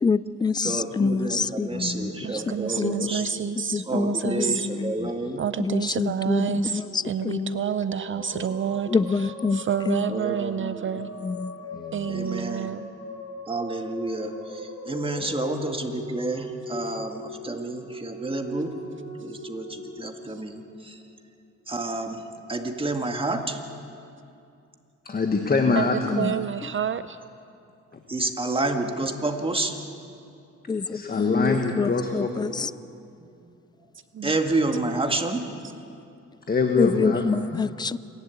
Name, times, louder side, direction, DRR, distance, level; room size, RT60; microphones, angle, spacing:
voice 1, 0.0-1.7 2.8-3.1 3.7-4.1 4.8-4.9 5.6-7.6 8.9-10.0 11.2-11.5 26.1-26.4 30.7-32.7 36.8-38.0, left 4 dB, 15° left, 18 dB, 0.4 m, -26 dB
voice 2, 0.6-3.3 3.9-5.4 8.5-8.6 10.1-11.0 12.1-12.8 13.5-18.7 19.1-21.0 21.7-23.6 28.1-29.8 30.1-30.2 33.2-33.5 34.2-35.6, right 2 dB, 20° right, 4 dB, 1.9 m, -29 dB
voice 3, 1.7-2.1 5.0-5.1 8.3-8.4 11.7-12.2 25.0-26.0 27.9-28.0 30.9-32.5 36.5-37.2 37.5-37.6, left 4 dB, 30° left, 4 dB, 1.5 m, -25 dB
voice 4, 2.2-4.5 5.4-11.1 11.9-12.9 25.8-25.9 26.1-27.2 34.1-34.3, right 8 dB, 40° right, 13 dB, 0.5 m, -29 dB
sound 1, 6.7-21.2, left 2 dB, 60° left, 6.9 m, -40 dB
27.5 x 11.5 x 8.5 m, 2.5 s
cardioid pair, 90°, 30 cm